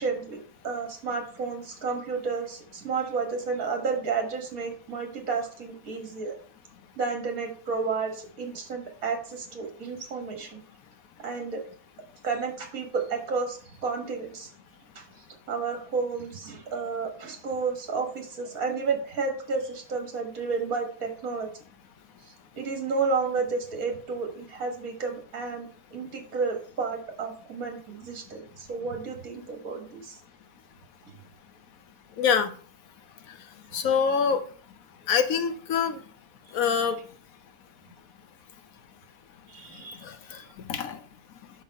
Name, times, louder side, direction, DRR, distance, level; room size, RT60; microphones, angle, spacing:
voice 1, 0.0-6.4 7.0-10.6 11.2-11.6 12.2-14.5 15.0-15.1 15.5-21.5 22.6-30.2 31.1-31.2 33.8-33.9 39.5-40.5, right 4 dB, 65° right, 2.0 m, -31 dB
voice 2, 32.2-32.5 33.7-34.4 35.1-36.0 36.5-37.0 40.7-41.0, left 6 dB, 65° left, 1.1 m, -24 dB
5.5 x 5.4 x 5.3 m
omnidirectional pair, 1.6 m